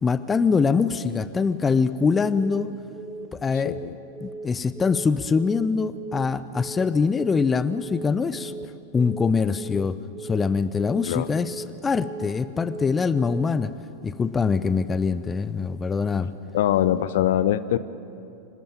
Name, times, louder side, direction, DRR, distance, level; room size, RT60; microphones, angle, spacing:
voice 1, 0.0-2.7 3.3-3.8 4.2-8.5 8.9-13.7 14.0-16.3, left 5 dB, 15° left, 15 dB, 0.7 m, -23 dB
Telephone, 2.4-2.7 3.0-3.3 3.6-3.9 4.2-4.5 4.8-5.1 5.4-5.7 6.0-6.3 6.6-6.9 7.2-7.5 7.8-8.1 8.4-8.7 9.0-9.3 9.6-9.9 10.2-10.5 10.8-11.1 11.4-11.7 12.0-12.3 12.6-12.9 13.2-13.5, right 3 dB, 10° right, 1.5 m, -37 dB
voice 2, 3.7-4.0 11.1-11.3 16.5-17.8, left 12 dB, 55° left, 15 dB, 0.6 m, -22 dB
26.0 x 12.5 x 9.1 m, 2.7 s
figure-of-eight pair, 90°, 0 cm